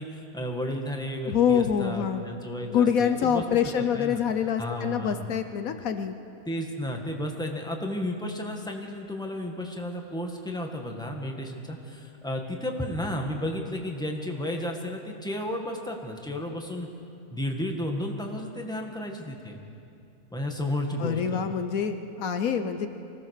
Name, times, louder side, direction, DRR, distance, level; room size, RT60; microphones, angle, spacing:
voice 1, 0.0-4.2 4.6-5.4 6.5-16.9 17.3-19.6 20.3-21.4, left 1 dB, 5° left, 1 dB, 1.8 m, -33 dB
voice 2, 1.3-2.2 2.7-6.1 21.0-22.9, left 8 dB, 75° left, 8 dB, 1.3 m, -25 dB
24.5 x 17.5 x 6.7 m, 2.6 s
omnidirectional pair, 1.5 m